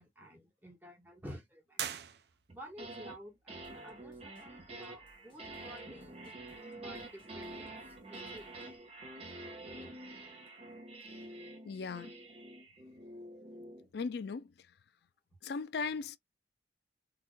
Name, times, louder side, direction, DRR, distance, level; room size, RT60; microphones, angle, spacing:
voice 1, 0.0-1.8 2.5-8.8, equal, 10° right, 1.2 m, -52 dB
sound 1, 1.7-2.8, right 9 dB, 60° right, 0.5 m, -41 dB
sound 2, 2.5-3.2 3.5-13.9, right 2 dB, 35° right, 1.0 m, -48 dB
sound 3, 3.6-8.8, left 1 dB, 30° left, 1.0 m, -66 dB
voice 2, 11.7-12.1 13.9-14.5 15.4-16.2, left 5 dB, 60° left, 0.4 m, -37 dB
4.0 x 2.5 x 2.2 m
head